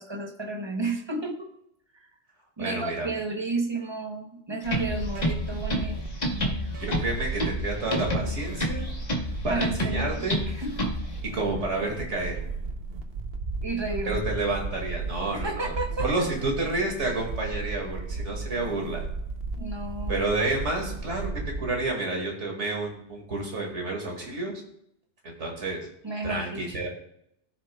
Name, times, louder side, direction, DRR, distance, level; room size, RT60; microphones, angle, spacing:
voice 1, 0.0-1.5 1.9-2.1 2.6-6.0 6.4-6.6 9.5-10.9 13.6-14.2 15.3-16.3 19.6-20.2 26.0-26.8, right 3 dB, 25° right, 4 dB, 0.9 m, -32 dB
voice 2, 2.6-3.1 6.8-8.9 9.4-10.4 11.2-12.4 14.1-15.7 16.0-19.0 20.1-24.6 25.2-25.9 26.2-26.9, right 2 dB, 90° right, 1 dB, 2.4 m, -30 dB
sound 1, 4.6-11.2, left 1 dB, 40° left, 1.1 m, -30 dB
sound 2, 4.6-22.0, right 3 dB, 60° right, 1.1 m, -35 dB
15.5 x 6.5 x 2.3 m, 0.75 s
omnidirectional pair, 1.2 m